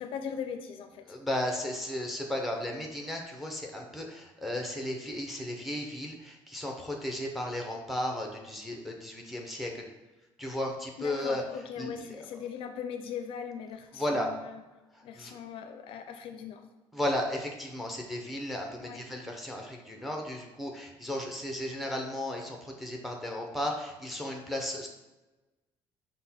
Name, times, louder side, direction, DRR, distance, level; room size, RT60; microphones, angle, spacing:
voice 1, 0.0-1.2 11.0-14.6 15.0-16.7 18.8-19.0, left 7 dB, 60° left, 7 dB, 0.4 m, -40 dB
voice 2, 1.1-9.8 10.4-11.4 11.8-11.9 14.0-14.3 14.9-15.4 16.9-24.9, left 1 dB, ahead, 1 dB, 0.5 m, -34 dB
5.8 x 2.1 x 4.1 m, 1.1 s
cardioid pair, 165°, 10 cm